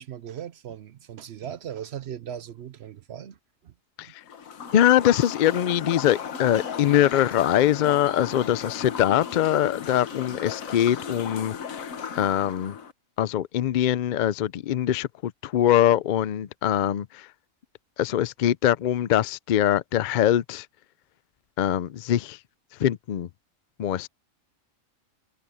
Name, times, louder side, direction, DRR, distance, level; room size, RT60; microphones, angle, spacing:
voice 1, 0.0-3.4 3.6-3.7 4.0-4.1, right 9 dB, 60° right, 0.8 m, -38 dB
sound 1, 4.2-12.9, left 7 dB, 90° left, 1.6 m, -35 dB
voice 2, 4.7-11.8 12.2-12.8 13.2-17.3 18.0-20.7 21.6-22.4 22.8-23.3 23.8-24.1, left 11 dB, 70° left, 0.4 m, -23 dB
omnidirectional pair, 1.4 m